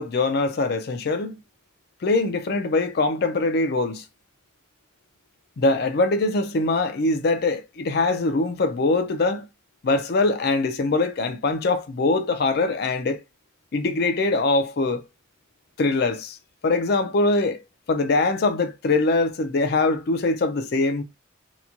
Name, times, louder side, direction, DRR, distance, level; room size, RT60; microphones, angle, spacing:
voice 1, 0.0-1.4 2.0-4.0 5.6-9.5 9.8-13.2 13.7-15.0 15.8-16.4 16.6-17.6 17.9-21.0, left 3 dB, 55° left, 0.4 m, -22 dB
2.9 x 2.2 x 2.5 m
head